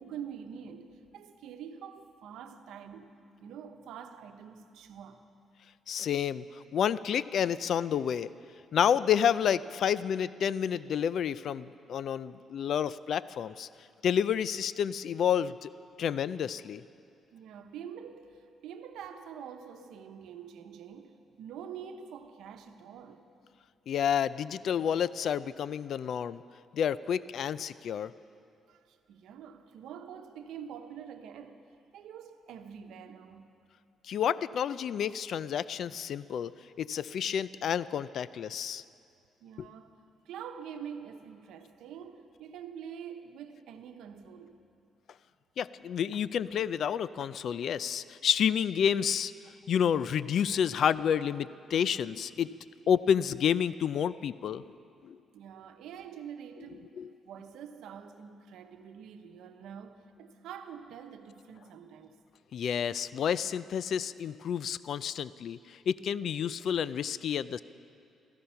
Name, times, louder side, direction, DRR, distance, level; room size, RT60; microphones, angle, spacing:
voice 1, 0.0-5.2 17.3-23.3 28.7-31.6 31.9-33.5 39.4-40.0 40.2-44.6 55.3-57.0 57.2-62.2, right 8 dB, 85° right, 1.0 m, -46 dB
voice 2, 5.9-8.3 8.7-13.7 14.0-15.7 16.0-16.8 23.9-26.4 26.7-28.1 34.0-36.5 36.8-38.8 39.6-39.7 45.6-49.3 49.7-52.5 52.9-54.8 55.0-55.2 57.0-57.1 62.5-67.6, left 8 dB, 65° left, 0.4 m, -29 dB
17.0 x 15.0 x 5.7 m
cardioid pair, 90°, 0 cm